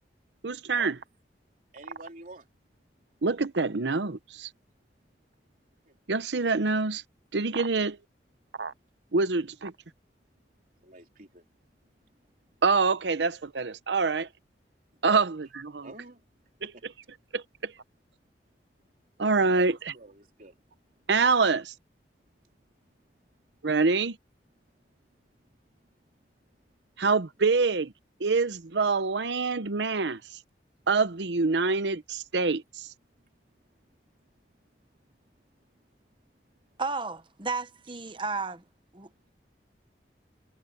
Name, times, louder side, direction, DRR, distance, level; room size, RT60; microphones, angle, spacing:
voice 1, 0.4-1.0 3.2-4.5 6.1-7.0 7.3-8.0 8.6-8.7 9.1-9.7 12.6-14.3 15.0-15.9 16.6-16.9 17.3-17.7 19.2-19.8 21.1-21.7 23.6-24.2 27.0-27.9 28.2-30.2 30.9-32.9, right 4 dB, 85° right, 0.9 m, -26 dB
voice 2, 1.7-2.5 5.9-6.0 10.8-11.4 15.1-15.3 15.8-16.2 16.6-16.8 19.5-20.6, right 2 dB, 50° right, 3.6 m, -46 dB
voice 3, 36.8-38.6 38.9-39.1, right 4 dB, 30° right, 1.1 m, -33 dB
head